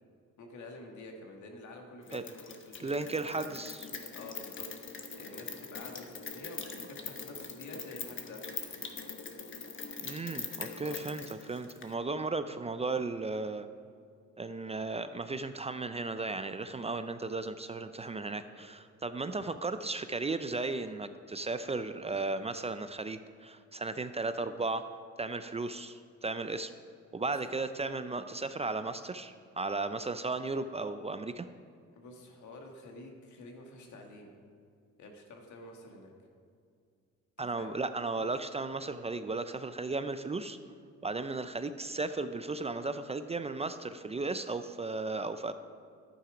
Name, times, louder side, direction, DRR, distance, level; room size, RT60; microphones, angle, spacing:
voice 1, 0.4-3.5 4.1-4.7 5.0-8.5 10.6-11.0 17.8-18.2 18.5-18.7 27.1-27.4 31.9-34.3 35.0-36.1 37.4-37.7, left 2 dB, 75° left, 2 dB, 1.9 m, -49 dB
Rain, 2.1-11.9, left 5 dB, 40° left, 1.2 m, -43 dB
voice 2, 2.8-3.9 10.0-13.7 14.4-24.9 25.2-26.7 27.1-31.5 37.4-40.6 41.0-45.5, right 3 dB, 20° right, 10 dB, 0.5 m, -35 dB
11.5 x 8.9 x 5.1 m, 2.3 s
cardioid pair, 90°, 30 cm